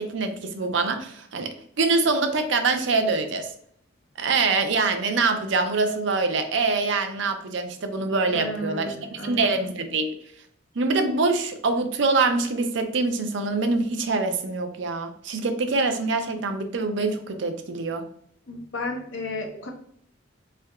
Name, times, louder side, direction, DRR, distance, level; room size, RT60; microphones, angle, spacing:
voice 1, 0.0-1.5 1.8-3.5 4.2-10.1 10.8-18.0, right 3 dB, 65° right, 7 dB, 0.5 m, -24 dB
voice 2, 8.3-9.5 18.5-19.7, left 1 dB, 75° left, 2 dB, 0.8 m, -33 dB
3.6 x 3.4 x 2.2 m, 0.66 s
head